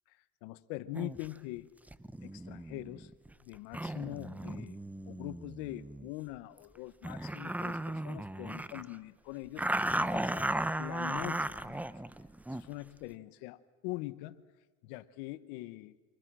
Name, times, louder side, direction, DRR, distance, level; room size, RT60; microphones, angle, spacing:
voice 1, 0.4-1.7 2.2-3.1 3.4-4.8 5.1-9.7 10.0-11.8 12.6-14.5 14.8-16.0, left 18 dB, 80° left, 13 dB, 1.2 m, -43 dB
sound 1, 0.9-1.3 1.9-6.1 6.6-6.7 7.0-9.0 9.6-12.7, right 1 dB, 5° right, 0.7 m, -36 dB
28.5 x 24.5 x 6.2 m, 1.4 s
supercardioid pair, 105°, 37 cm